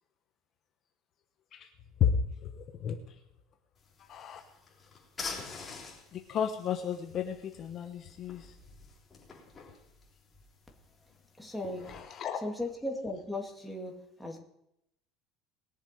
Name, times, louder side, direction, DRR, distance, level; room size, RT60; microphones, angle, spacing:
voice 1, 2.0-3.2 4.0-4.4 6.1-8.6 11.9-12.4, left 8 dB, 40° left, 4 dB, 1.1 m, -33 dB
sound 1, 3.8-12.0, left 4 dB, 20° left, 3.6 m, -47 dB
voice 2, 11.4-11.9 12.4-14.4, left 1 dB, ahead, 0 dB, 2.0 m, -37 dB
20.5 x 7.3 x 5.1 m, 0.79 s
cardioid pair, 150°, 0 cm